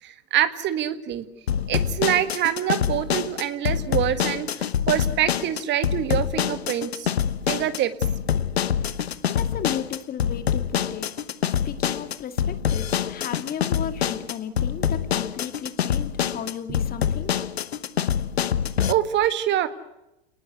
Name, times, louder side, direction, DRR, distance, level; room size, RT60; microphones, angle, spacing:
voice 1, 0.0-1.3 1.7-7.1 7.5-7.9 18.9-19.7, right 11 dB, 35° right, 11 dB, 1.9 m, -25 dB
sound 1, 1.5-18.9, left 9 dB, 85° left, 1.1 m, -25 dB
voice 2, 9.3-11.1 11.7-17.3, left 8 dB, 30° left, 9 dB, 2.2 m, -35 dB
30.0 x 19.5 x 8.1 m, 0.92 s
hypercardioid pair, 105°, 31 cm